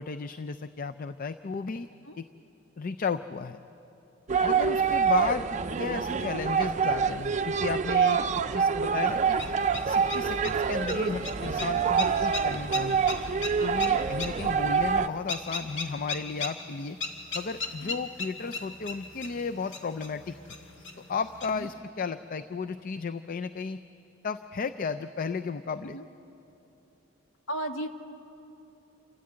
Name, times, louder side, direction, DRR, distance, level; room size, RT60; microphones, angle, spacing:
voice 1, 0.0-1.9 2.2-2.3 2.8-3.6 4.4-9.4 9.8-13.0 13.6-17.0 17.3-20.4 21.1-23.8 24.2-26.0, left 5 dB, 45° left, 10 dB, 0.4 m, -34 dB
sound 1, 4.3-15.1, right 6 dB, 40° right, 0.5 m, -26 dB
sound 2, 9.1-21.7, left 3 dB, 65° left, 2.1 m, -39 dB
voice 2, 27.5-27.9, right 1 dB, 85° left, 5 dB, 1.4 m, -36 dB
27.5 x 14.0 x 8.7 m, 3.0 s
head